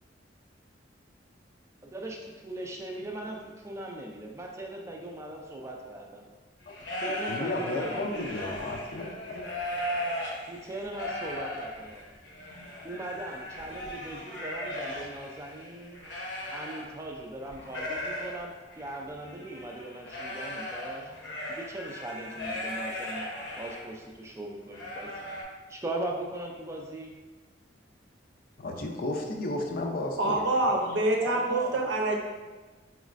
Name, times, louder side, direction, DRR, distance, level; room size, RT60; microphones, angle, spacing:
voice 1, 1.8-6.2 7.0-8.3 10.5-12.0 12.8-16.1 16.5-21.1 21.5-23.3 23.6-25.2 25.7-27.2 31.2-31.8, right 1 dB, 15° right, 0 dB, 0.4 m, -39 dB
sound 1, 6.6-17.2 17.5-23.8 24.3-24.4 24.7-25.4, left 1 dB, 70° left, 0.8 m, -37 dB
voice 2, 7.3-9.5 28.6-30.4, left 2 dB, 50° left, 2 dB, 0.4 m, -33 dB
voice 3, 30.2-32.2, right 2 dB, 75° right, 0 dB, 0.6 m, -26 dB
4.0 x 3.1 x 2.5 m, 1.3 s
head